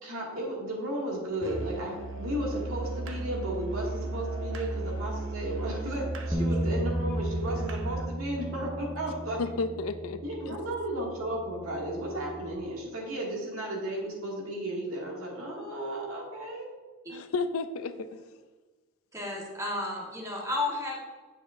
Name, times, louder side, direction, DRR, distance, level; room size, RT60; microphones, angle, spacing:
voice 1, 0.0-9.4 10.2-16.6, right 1 dB, 85° right, -3 dB, 2.2 m, -34 dB
Musical instrument, 1.4-8.2, right 2 dB, 65° right, 0.7 m, -35 dB
Bass guitar, 6.3-12.6, equal, 5° left, 0.4 m, -35 dB
voice 2, 9.4-10.2 10.5-10.6 17.1-18.2, left 3 dB, 85° left, 11 dB, 0.5 m, -32 dB
voice 3, 19.1-21.0, left 2 dB, 15° right, -3 dB, 1.4 m, -32 dB
8.8 x 6.9 x 2.6 m, 1.3 s
head